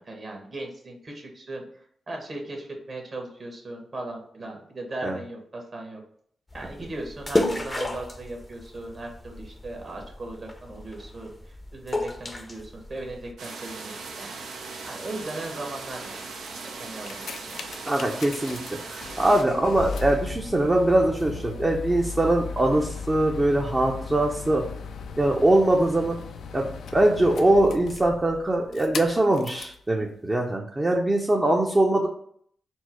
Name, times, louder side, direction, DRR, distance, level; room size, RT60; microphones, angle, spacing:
voice 1, 0.0-6.0 6.5-14.4 14.8-16.2 16.8-17.6, right 2 dB, 50° right, 1 dB, 1.3 m, -38 dB
sound 1, 6.5-13.3, left 2 dB, 25° left, 0.6 m, -33 dB
sound 2, 13.4-19.4, right 4 dB, 85° right, 0.6 m, -39 dB
sound 3, 16.8-29.8 30.5-30.6, left 5 dB, 80° left, 0.4 m, -37 dB
voice 2, 17.9-18.6 18.9-24.6 25.2-26.2 26.5-32.1, right 1 dB, 25° right, 0 dB, 0.6 m, -22 dB
4.4 x 2.0 x 4.4 m, 0.63 s
cardioid pair, 70°, 0 cm